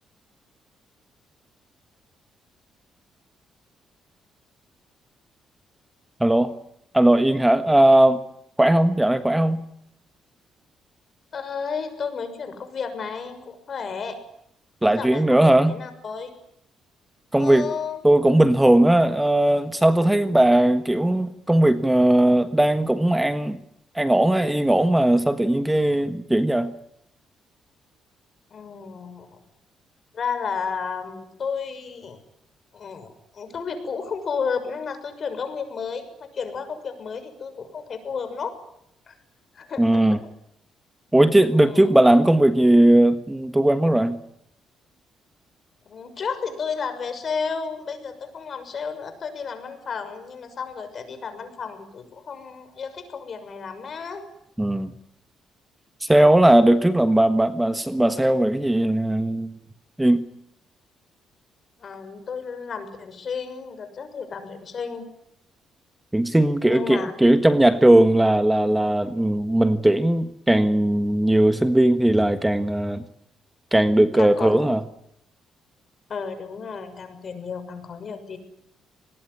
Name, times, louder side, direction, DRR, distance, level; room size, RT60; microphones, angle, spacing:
voice 1, 6.2-6.5 6.9-8.2 8.6-9.6 14.8-15.8 17.3-17.7 18.0-23.6 23.9-26.7 39.8-40.2 41.1-44.2 54.6-54.9 56.0-59.5 60.0-60.2 66.1-73.0 73.7-74.8, right 1 dB, 10° right, 10 dB, 1.5 m, -18 dB
voice 2, 11.3-14.2 14.8-16.3 17.4-18.0 28.5-29.4 30.1-32.2 32.7-38.6 39.1-39.2 39.5-40.2 41.5-41.9 45.9-54.2 61.8-65.0 66.6-67.1 74.1-74.6 76.1-78.4, left 5 dB, 50° left, 10 dB, 6.5 m, -32 dB
24.5 x 20.5 x 9.8 m, 0.76 s
cardioid pair, 90°, 0 cm